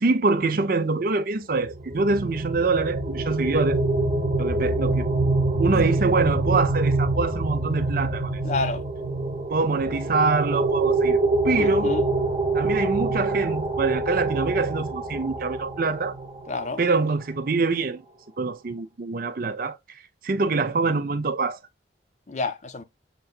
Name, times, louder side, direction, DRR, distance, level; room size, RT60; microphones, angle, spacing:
voice 1, 0.0-3.8 4.4-5.1 5.6-8.3 9.5-11.2 11.4-11.9 12.5-16.1 16.8-18.0 18.4-19.8 20.2-21.6, right 3 dB, 50° right, 0.5 m, -24 dB
sound 1, 1.7-16.4, right 2 dB, 35° right, 0.9 m, -25 dB
voice 2, 8.4-8.8 11.6-12.0 16.5-16.8 22.3-22.8, left 3 dB, 40° left, 0.6 m, -29 dB
6.7 x 2.7 x 2.3 m
head